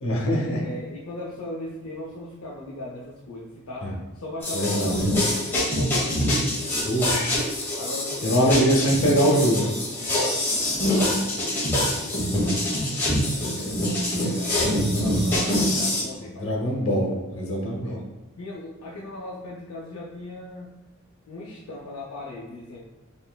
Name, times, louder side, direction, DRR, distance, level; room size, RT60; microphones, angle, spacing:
voice 1, 0.0-0.7 3.8-3.9 4.5-5.0 6.8-7.4 8.2-9.7 16.2-18.0, equal, 65° left, -1 dB, 0.8 m, -23 dB
voice 2, 0.6-6.4 7.8-8.7 10.0-10.6 10.8-13.2 13.5-17.0 17.8-18.1 18.4-20.8 21.3-22.8, left 1 dB, 85° left, -3 dB, 0.5 m, -38 dB
sound 1, 4.4-16.0, left 1 dB, 10° left, 1.1 m, -25 dB
4.2 x 3.1 x 2.2 m, 1.1 s
head